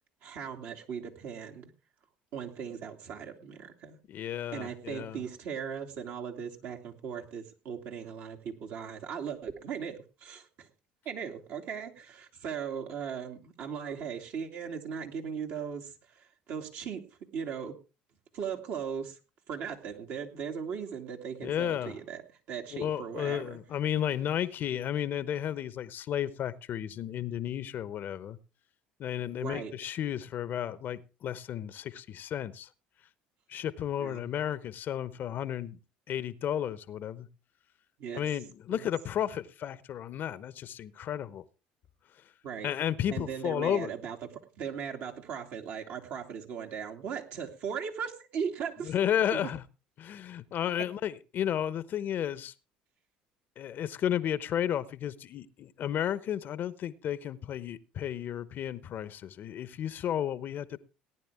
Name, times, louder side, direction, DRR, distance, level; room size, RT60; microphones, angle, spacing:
voice 1, 0.2-1.7 2.3-4.0 4.5-10.7 11.0-17.0 17.3-17.8 18.3-19.2 19.5-22.2 22.5-23.6 29.4-29.7 34.0-34.2 38.0-38.2 38.7-38.8 42.4-42.7 43.1-44.2 44.6-49.0 49.3-49.5, right 7 dB, 60° right, 2.7 m, -38 dB
voice 2, 4.1-5.2 21.4-21.9 22.7-28.4 29.0-32.7 33.5-35.8 36.1-37.3 38.1-41.4 42.6-43.9 48.8-49.6 50.0-52.5 53.6-60.8, left 10 dB, 55° left, 1.0 m, -33 dB
18.0 x 10.0 x 3.5 m
hypercardioid pair, 65°, 4 cm